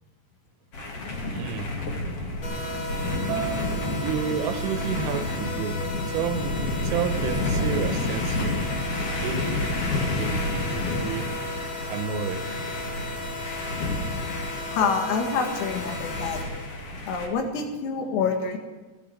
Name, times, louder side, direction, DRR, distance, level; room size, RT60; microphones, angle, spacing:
sound 1, 0.7-17.3, left 2 dB, 50° left, 1.8 m, -30 dB
voice 1, 1.3-1.8 4.0-8.7 9.2-9.7 10.1-11.3 11.6-12.5 12.9-13.8, right 8 dB, 80° right, 3.3 m, -32 dB
sound 2, 2.4-16.4, left 2 dB, 30° left, 2.8 m, -36 dB
Acoustic guitar, 3.3-8.5, right 6 dB, 50° right, 2.0 m, -38 dB
voice 2, 14.7-16.4 17.1-18.6, left 5 dB, 80° left, 4.4 m, -27 dB
16.0 x 10.5 x 7.7 m
omnidirectional pair, 6.0 m